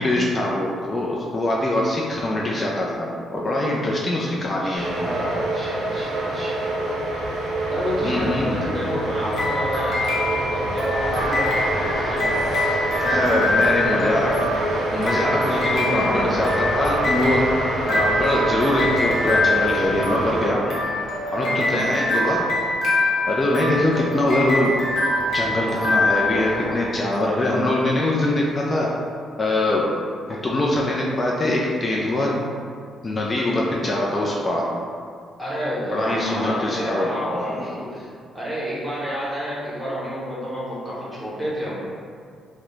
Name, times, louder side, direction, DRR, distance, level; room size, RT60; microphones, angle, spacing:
voice 1, 0.0-4.9 8.0-8.6 13.0-14.3 14.9-17.4 17.9-20.8 21.3-22.5 23.3-24.8 25.3-28.9 29.4-29.8 30.4-32.3 33.0-34.7 35.9-37.1, left 1 dB, 30° left, -3 dB, 0.3 m, -23 dB
voice 2, 4.6-7.0 7.7-12.4 13.8-14.1 15.9-16.2 21.4-21.8 30.3-30.4 35.4-38.1 38.3-41.7, equal, 20° right, -8 dB, 0.9 m, -30 dB
sound 1, 4.7-20.5, right 1 dB, 80° right, 0.4 m, -27 dB
sound 2, 9.3-27.0, left 2 dB, 75° left, 0.7 m, -25 dB
sound 3, 11.1-26.7, equal, 45° right, 0.6 m, -32 dB
2.3 x 2.0 x 3.0 m, 2.2 s
cardioid pair, 90°, 0 cm